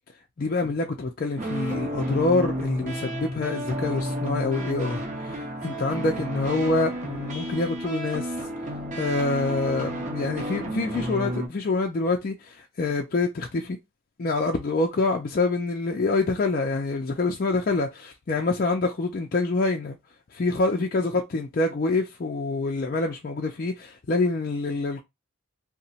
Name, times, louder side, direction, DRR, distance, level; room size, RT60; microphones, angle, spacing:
voice 1, 0.4-8.3 9.0-13.8 14.2-20.0 20.3-25.0, left 3 dB, 45° left, 0.4 m, -26 dB
sound 1, 1.4-11.5, right 1 dB, 35° right, 0.6 m, -31 dB
2.9 x 2.1 x 2.7 m
head